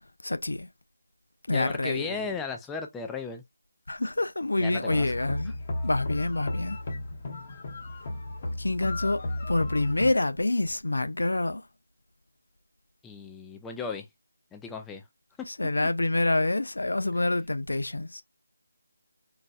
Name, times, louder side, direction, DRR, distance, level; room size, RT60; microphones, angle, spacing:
voice 1, 0.2-0.7 1.5-2.2 3.9-5.5 5.8-6.8 8.6-11.7 15.5-18.2, left 2 dB, 90° left, 0.4 m, -27 dB
voice 2, 1.5-3.4 4.6-5.1 13.0-14.1 14.5-15.1 15.4-15.5 17.1-17.2, left 5 dB, 5° left, 0.3 m, -36 dB
sound 1, 4.9-10.1, left 2 dB, 35° left, 0.8 m, -34 dB
4.0 x 2.2 x 2.3 m
figure-of-eight pair, 170°, 0 cm